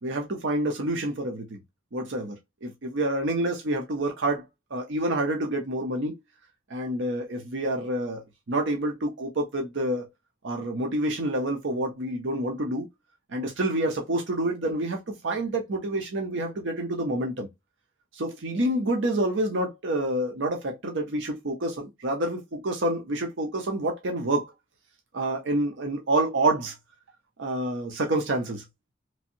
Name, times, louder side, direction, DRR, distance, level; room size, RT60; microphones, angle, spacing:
voice 1, 0.0-1.6 1.9-4.4 4.7-6.2 6.7-8.2 8.5-10.0 10.4-12.9 13.3-17.5 18.1-24.5 25.1-26.7 27.4-28.6, right 1 dB, 75° right, 0.7 m, -28 dB
3.1 x 2.6 x 2.7 m
head